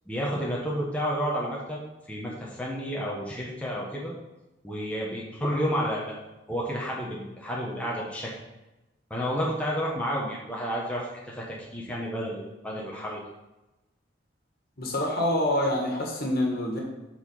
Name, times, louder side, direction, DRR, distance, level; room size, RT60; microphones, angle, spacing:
voice 1, 0.1-1.8 2.1-4.1 4.6-6.1 6.5-8.3 9.1-11.4 11.7-13.2, equal, 5° left, -5 dB, 1.3 m, -30 dB
voice 2, 14.8-16.8, left 1 dB, 55° left, -1 dB, 1.9 m, -26 dB
7.7 x 4.5 x 5.7 m, 1.0 s
head